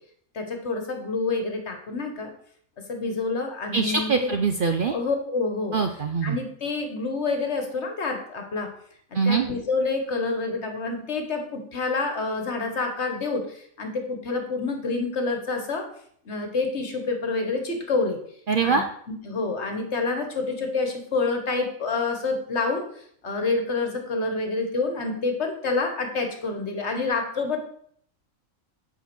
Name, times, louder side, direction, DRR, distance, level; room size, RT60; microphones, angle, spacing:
voice 1, 0.3-2.3 2.9-4.3 4.9-5.8 6.2-8.7 9.2-15.9 16.2-18.2 18.6-18.8 19.2-27.6, left 3 dB, 55° left, 4 dB, 1.6 m, -28 dB
voice 2, 3.7-5.0 5.7-6.4 9.1-9.5 18.5-18.9, right 5 dB, 55° right, 6 dB, 0.6 m, -23 dB
8.2 x 5.0 x 6.1 m, 0.64 s
omnidirectional pair, 1.4 m